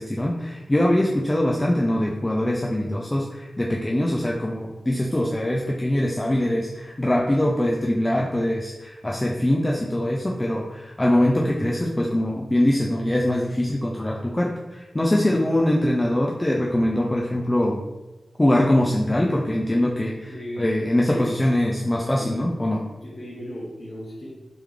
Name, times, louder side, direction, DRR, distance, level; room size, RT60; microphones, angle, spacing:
voice 1, 0.0-17.8 18.4-22.8, left 1 dB, 15° left, -2 dB, 0.4 m, -23 dB
voice 2, 20.2-20.7 21.0-21.3 21.9-22.3 23.0-24.3, left 1 dB, 45° left, -6 dB, 0.8 m, -35 dB
3.5 x 3.1 x 3.4 m, 1.1 s
wide cardioid pair, 105°, 0 cm